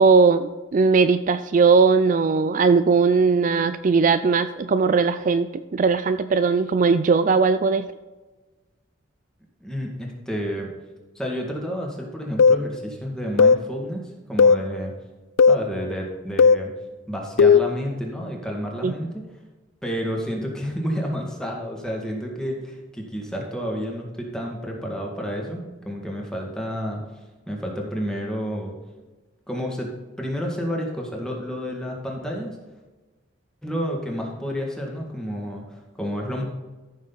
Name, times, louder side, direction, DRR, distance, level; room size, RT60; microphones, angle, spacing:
voice 1, 0.0-7.9 18.8-18.9, right 4 dB, 40° right, 11 dB, 0.3 m, -19 dB
voice 2, 9.6-10.7 11.2-14.0 14.3-14.9 15.5-16.7 17.1-19.2 19.8-27.0 27.5-28.8 29.5-29.9 30.2-32.6 33.6-36.4, equal, 5° left, -1 dB, 2.0 m, -30 dB
sound 1, 12.4-12.6 13.4-13.6 14.4-14.6 15.4-15.6 16.4-16.6 17.4-17.7, left 5 dB, 70° left, 0.4 m, -14 dB
14.5 x 6.5 x 4.0 m, 1.2 s
head